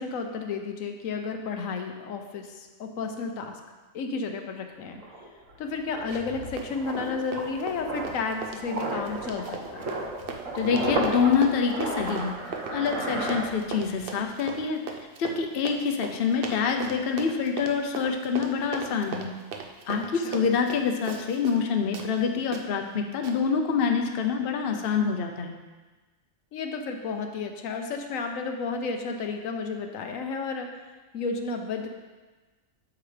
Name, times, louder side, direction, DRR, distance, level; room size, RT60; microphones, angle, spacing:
voice 1, 0.0-3.6 3.9-5.0 5.6-9.9 19.9-20.3 26.5-30.7 31.1-31.9, left 4 dB, 80° left, 4 dB, 1.1 m, -32 dB
sound 1, 4.6-4.7 5.0-14.1 14.3-14.6, right 2 dB, 75° right, 1.5 m, -34 dB
Run, 6.1-6.3 6.6-21.7 21.9-22.1 22.5-22.6 23.2-23.4, right 5 dB, 50° right, 0.8 m, -38 dB
voice 2, 10.5-14.8 15.2-19.3 19.9-25.6, left 6 dB, 55° left, 4 dB, 0.8 m, -26 dB
8.7 x 7.0 x 3.3 m, 1.3 s
omnidirectional pair, 1.4 m